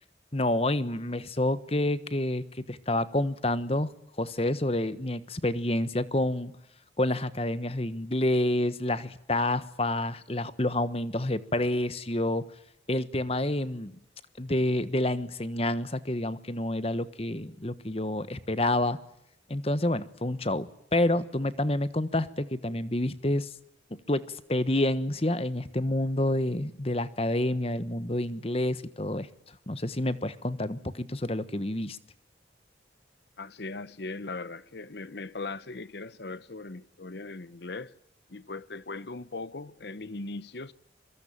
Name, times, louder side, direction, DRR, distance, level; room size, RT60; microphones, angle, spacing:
voice 1, 0.3-3.9 4.2-6.5 7.0-12.4 12.9-13.9 14.4-19.0 19.5-23.5 24.1-29.3 29.7-32.0, left 1 dB, 30° left, 1.3 m, -28 dB
voice 2, 33.4-38.0 38.3-40.7, left 3 dB, 60° left, 0.9 m, -39 dB
24.5 x 23.5 x 8.8 m
head